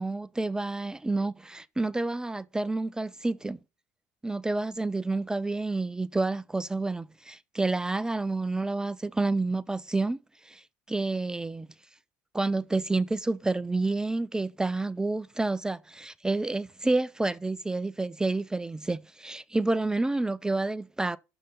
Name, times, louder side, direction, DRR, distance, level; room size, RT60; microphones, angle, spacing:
voice 1, 0.0-3.6 4.2-10.2 10.4-10.6 10.9-11.7 12.3-21.2, right 2 dB, 10° right, 0.3 m, -29 dB
6.7 x 5.5 x 5.2 m
supercardioid pair, 90°, 7 cm